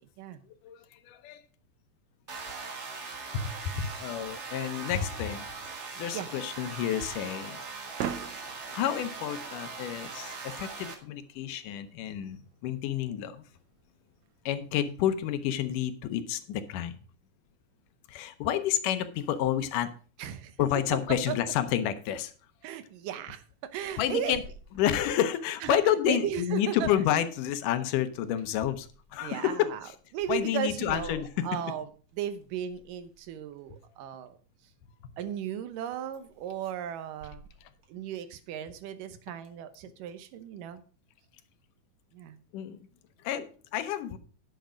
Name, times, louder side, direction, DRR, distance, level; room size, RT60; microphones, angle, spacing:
voice 1, 0.6-1.4 3.3-7.7 8.7-13.4 14.5-17.0 18.1-19.9 20.6-22.3 24.0-24.4 24.8-29.7 30.3-31.6 42.5-42.8 43.2-44.2, left 10 dB, 80° left, 2.4 m, -30 dB
sound 1, 2.3-10.9, right 4 dB, 55° right, 0.7 m, -40 dB
sound 2, 5.4-15.4, right 9 dB, 70° right, 1.9 m, -45 dB
voice 2, 20.2-20.6 21.3-21.4 22.6-23.4 23.7-24.4 25.6-25.8 26.1-26.9 29.2-29.8 30.1-31.9 32.1-34.4 35.2-37.5 37.9-40.8 42.1-42.4, right 9 dB, 90° right, 2.6 m, -35 dB
sound 3, 23.7-25.8 26.3-35.0 35.5-35.8 36.1-38.6 39.1-40.1, right 1 dB, 40° right, 2.5 m, -54 dB
10.5 x 7.2 x 5.1 m
omnidirectional pair, 3.7 m